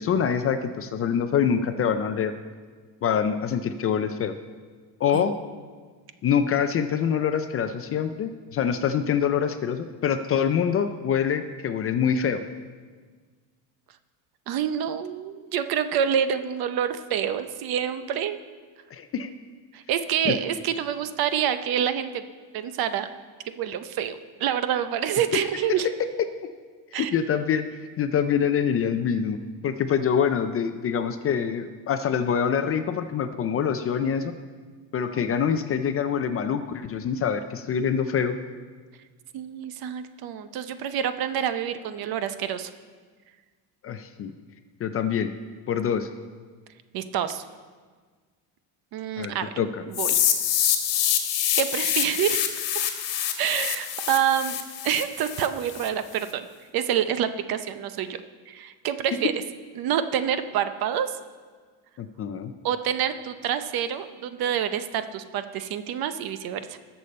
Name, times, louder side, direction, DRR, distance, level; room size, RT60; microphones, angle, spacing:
voice 1, 0.0-2.3 3.0-4.3 5.0-5.4 6.2-12.4 18.9-19.3 20.2-20.3 26.9-27.6 28.0-29.4 29.6-34.3 34.9-38.4 43.8-44.3 44.8-45.3 45.7-46.1 49.2-49.8 62.0-62.5, left 7 dB, 35° left, 9 dB, 0.4 m, -25 dB
voice 2, 14.5-18.4 19.7-22.2 22.5-23.1 23.6-25.9 26.9-27.1 39.3-42.7 44.3-44.4 46.9-47.4 48.9-49.5 49.9-50.2 51.5-52.4 53.4-54.6 54.8-56.5 56.7-58.2 58.5-59.3 59.8-61.2 62.6-66.8, right 9 dB, 55° right, 11 dB, 0.7 m, -27 dB
sound 1, 49.9-55.9, left 10 dB, 65° left, 1.5 m, -26 dB
19.5 x 6.8 x 4.2 m, 1.5 s
cardioid pair, 155°, 45 cm